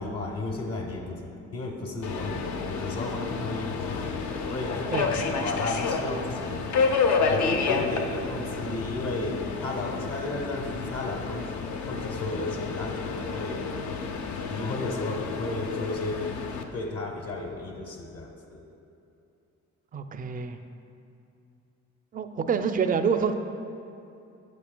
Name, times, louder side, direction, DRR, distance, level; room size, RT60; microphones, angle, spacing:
voice 1, 0.0-6.7 7.3-11.5 11.8-13.6 14.5-16.3 16.7-18.6, left 2 dB, 55° left, 1 dB, 1.0 m, -33 dB
Subway metro underground, 2.0-16.6, left 5 dB, 70° left, 0.6 m, -30 dB
voice 2, 19.9-20.6 22.1-23.3, right 6 dB, 30° right, 8 dB, 0.4 m, -27 dB
8.4 x 8.4 x 2.2 m, 2.7 s
cardioid pair, 90°, 30 cm